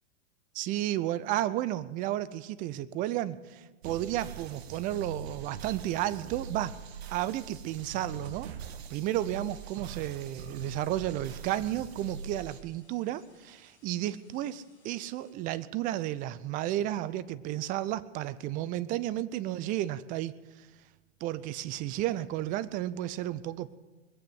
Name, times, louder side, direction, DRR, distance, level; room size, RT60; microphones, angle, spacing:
voice 1, 0.5-6.8 7.1-8.5 8.9-20.7 21.2-23.7, right 13 dB, 25° right, 17 dB, 0.4 m, -32 dB
sound 1, 3.8-12.6, right 6 dB, 65° right, 1.4 m, -42 dB
sound 2, 9.3-15.3, left 3 dB, 5° left, 6.0 m, -66 dB
21.0 x 8.5 x 7.9 m, 1.3 s
hypercardioid pair, 125°, 34 cm